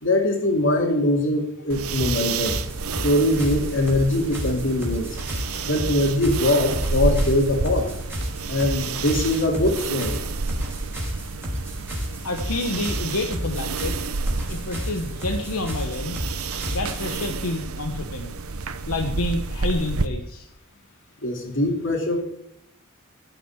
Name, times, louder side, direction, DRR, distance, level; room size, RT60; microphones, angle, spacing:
voice 1, 0.0-2.6 3.0-5.2 5.7-7.9 8.5-10.2 21.2-22.2, left 1 dB, 60° left, 2 dB, 2.8 m, -22 dB
sound 1, 1.7-20.1, right 4 dB, 90° right, 0.9 m, -30 dB
sound 2, 2.0-17.1, equal, 10° right, 4.0 m, -32 dB
voice 2, 12.2-14.0 14.5-16.3 16.7-18.4 18.9-20.5, left 2 dB, 85° left, 3 dB, 1.2 m, -28 dB
15.0 x 6.0 x 8.7 m, 0.79 s
head